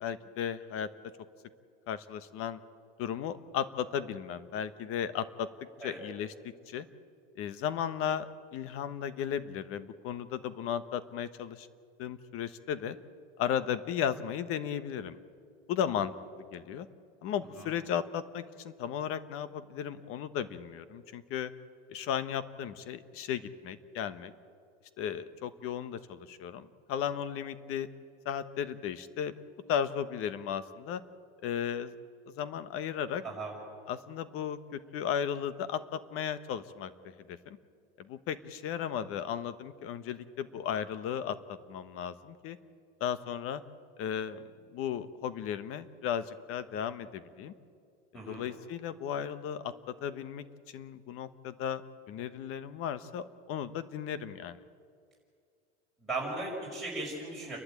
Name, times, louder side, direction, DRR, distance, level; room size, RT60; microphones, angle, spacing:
voice 1, 0.0-0.9 1.9-2.6 3.0-5.5 5.8-6.3 6.7-6.9 7.3-11.7 12.0-13.0 13.4-15.2 15.7-16.1 16.5-16.9 17.2-21.5 21.9-24.3 25.0-27.9 28.2-29.3 29.7-31.0 31.4-31.9 32.4-33.2 33.9-36.9 37.3-37.6 38.0-42.6 43.0-43.6 44.0-47.5 48.3-49.7 50.0-50.4 50.7-51.8 52.1-54.6, left 9 dB, 45° left, 13 dB, 1.2 m, -35 dB
voice 2, 33.2-33.5 48.1-48.4 56.0-57.6, right 2 dB, ahead, -4 dB, 5.9 m, -37 dB
29.5 x 11.5 x 9.0 m, 2.2 s
supercardioid pair, 135°, 32 cm